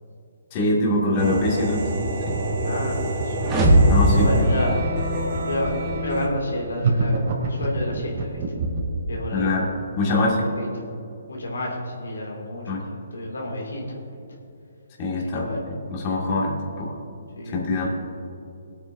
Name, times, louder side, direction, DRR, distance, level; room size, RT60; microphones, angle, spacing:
voice 1, 0.5-1.8 2.3-2.4 3.9-4.5 9.3-10.5 12.7-12.8 15.0-16.9 17.5-17.9, left 2 dB, 35° left, -3 dB, 2.2 m, -24 dB
sound 1, 1.2-6.3, right 1 dB, 45° right, 2.4 m, -27 dB
voice 2, 2.6-3.4 4.1-4.8 5.1-8.4 9.1-9.6 10.1-10.7 11.3-14.0 15.3-15.6 17.4-17.6, left 1 dB, 90° left, -2 dB, 2.6 m, -30 dB
sound 2, 3.4-5.6, equal, 20° right, 1.7 m, -19 dB
wompy bass, 6.8-9.0, right 3 dB, 60° right, 2.8 m, -24 dB
20.5 x 8.6 x 2.7 m, 2.7 s
hypercardioid pair, 145°, 0 cm